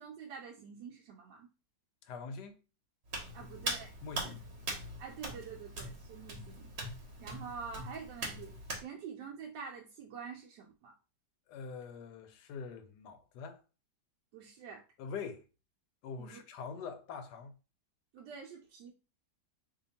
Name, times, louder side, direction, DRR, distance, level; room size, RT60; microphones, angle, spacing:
voice 1, 0.0-1.5 3.3-3.9 4.2-4.3 5.0-6.7 7.2-8.5 8.8-11.0 14.3-14.8 16.2-16.4 18.1-18.9, right 6 dB, 75° right, 1.2 m, -46 dB
voice 2, 2.0-2.6 3.4-3.5 4.0-4.4 11.5-13.6 15.0-15.4 16.0-17.5, left 5 dB, 75° left, 1.1 m, -44 dB
Hands, 3.1-8.8, right 2 dB, 45° right, 1.0 m, -41 dB
2.8 x 2.8 x 4.0 m
omnidirectional pair, 2.0 m